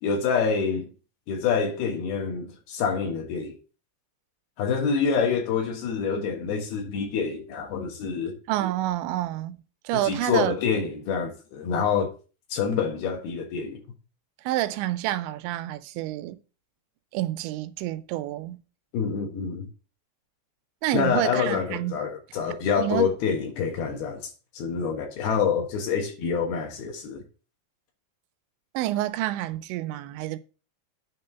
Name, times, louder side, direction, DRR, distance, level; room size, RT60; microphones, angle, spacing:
voice 1, 0.0-0.9 1.3-3.5 4.6-8.3 10.1-12.1 12.5-13.8 18.9-19.7 20.9-27.2, left 6 dB, 65° left, 3.0 m, -27 dB
voice 2, 8.5-9.6 9.8-10.6 14.4-16.4 17.1-18.6 20.8-22.0 22.8-23.1 28.7-30.4, right 15 dB, 90° right, 3.0 m, -28 dB
9.4 x 3.7 x 6.7 m
omnidirectional pair, 5.1 m